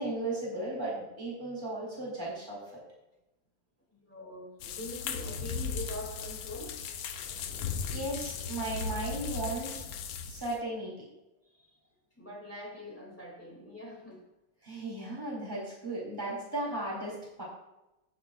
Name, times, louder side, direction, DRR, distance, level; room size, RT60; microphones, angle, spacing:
voice 1, 0.0-2.6 7.9-9.8 10.3-11.1 14.6-17.4, right 2 dB, 10° right, -5 dB, 3.6 m, -36 dB
voice 2, 3.9-6.8 11.4-14.2, left 1 dB, 5° left, -2 dB, 2.6 m, -44 dB
sound 1, 4.6-10.6, left 5 dB, 85° left, 1.6 m, -37 dB
17.5 x 7.7 x 2.5 m, 0.96 s
omnidirectional pair, 2.1 m